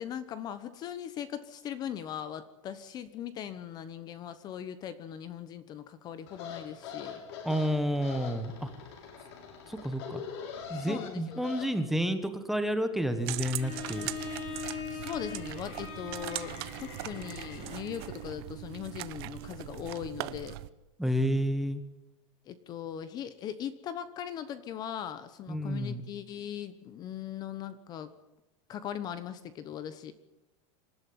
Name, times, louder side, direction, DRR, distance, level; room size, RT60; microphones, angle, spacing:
voice 1, 0.0-7.2 10.7-11.5 14.9-20.6 22.5-28.1 28.7-30.1, left 9 dB, 25° left, 13 dB, 1.1 m, -39 dB
sound 1, 6.3-11.7, left 6 dB, 60° left, 6.9 m, -43 dB
voice 2, 7.4-8.7 9.7-10.2 10.7-14.1 21.0-21.8 25.5-26.0, equal, ahead, 9 dB, 1.3 m, -30 dB
sound 2, 13.2-20.7, right 18 dB, 55° right, 1.0 m, -40 dB
Bowed string instrument, 13.6-18.4, left 7 dB, 40° left, 4.5 m, -42 dB
26.0 x 12.5 x 9.5 m, 0.98 s
supercardioid pair, 175°, 16 cm